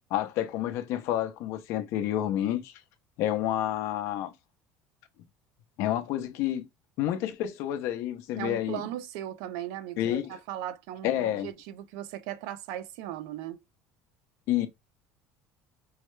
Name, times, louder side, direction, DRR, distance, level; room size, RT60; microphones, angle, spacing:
voice 1, 0.1-2.7 3.2-4.3 5.8-6.7 7.0-8.8 10.0-10.4 11.0-11.5 14.5-14.7, left 12 dB, 55° left, 0.6 m, -29 dB
voice 2, 8.4-13.6, right 12 dB, 75° right, 0.5 m, -38 dB
4.7 x 2.1 x 3.2 m
cardioid pair, 170°, 6 cm